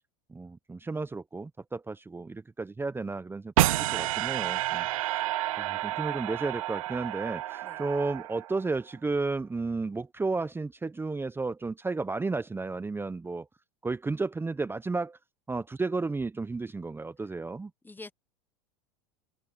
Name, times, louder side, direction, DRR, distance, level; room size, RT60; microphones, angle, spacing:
voice 1, 0.3-5.2 5.6-13.5 13.8-15.2 15.5-17.7, right 3 dB, 15° right, 1.0 m, -33 dB
sound 1, 3.6-8.8, right 16 dB, 80° right, 0.4 m, -30 dB
voice 2, 4.9-5.0 7.6-7.8 17.8-18.1, left 3 dB, 10° left, 1.1 m, -46 dB
hypercardioid pair, 95°, 17 cm